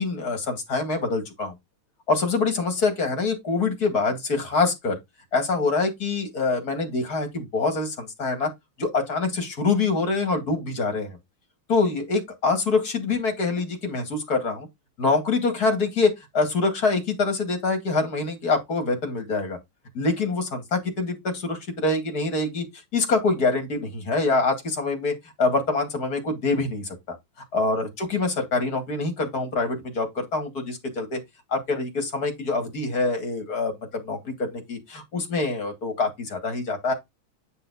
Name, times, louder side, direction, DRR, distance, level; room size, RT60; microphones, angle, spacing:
voice 1, 0.0-1.5 2.1-5.0 5.3-8.5 8.8-11.2 11.7-14.7 15.0-19.6 19.9-22.6 22.9-27.2 27.5-31.2 31.5-36.9, left 3 dB, 45° left, 2.5 m, -25 dB
9.2 x 4.2 x 4.0 m
omnidirectional pair, 2.3 m